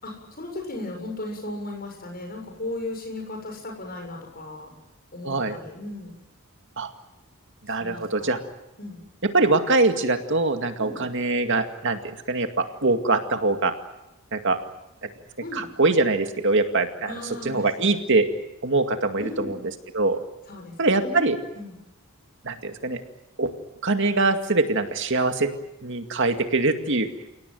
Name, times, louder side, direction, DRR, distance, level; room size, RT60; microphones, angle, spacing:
voice 1, 0.0-4.7 5.1-6.1 7.7-8.3 8.8-9.0 10.8-11.0 15.4-15.6 17.0-18.0 19.2-19.6 20.5-21.8, left 2 dB, 40° left, 2 dB, 7.2 m, -36 dB
voice 2, 5.2-5.6 6.8-6.9 7.7-8.4 9.2-13.7 14.3-14.6 15.0-15.1 15.5-17.1 17.4-18.3 18.6-19.6 19.9-20.2 20.8-21.4 22.4-23.0 23.4-23.5 23.8-25.5 25.8-27.1, right 3 dB, 55° right, 6 dB, 2.2 m, -23 dB
30.0 x 18.0 x 9.4 m, 0.95 s
head